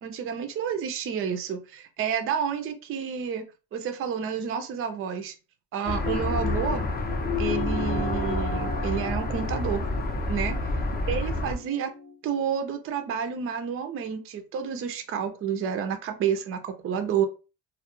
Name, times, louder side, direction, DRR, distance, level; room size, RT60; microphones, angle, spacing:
voice 1, 0.0-3.5 3.7-5.4 5.7-6.9 7.4-9.8 10.3-10.6 11.1-11.9 12.2-17.2, right 7 dB, 30° right, 7 dB, 0.4 m, -30 dB
sound 1, 5.9-11.5, left 2 dB, 20° left, 0.5 m, -28 dB
sound 2, 7.4-12.2, equal, 80° right, 0.7 m, -38 dB
2.2 x 2.0 x 2.9 m, 0.32 s
supercardioid pair, 95°, 45 cm